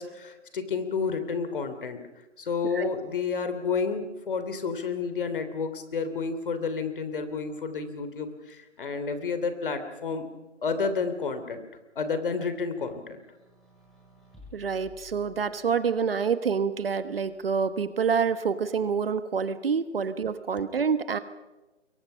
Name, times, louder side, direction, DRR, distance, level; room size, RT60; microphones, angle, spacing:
voice 1, 0.0-2.0 2.4-10.3 10.6-11.7 11.9-13.2, left 5 dB, 45° left, 9 dB, 3.2 m, -30 dB
sound 1, 13.1-15.9 16.8-17.7, left 3 dB, ahead, 5.1 m, -54 dB
voice 2, 14.5-21.2, right 6 dB, 50° right, 12 dB, 1.4 m, -27 dB
26.5 x 23.0 x 5.6 m, 1.1 s
figure-of-eight pair, 155°, 36 cm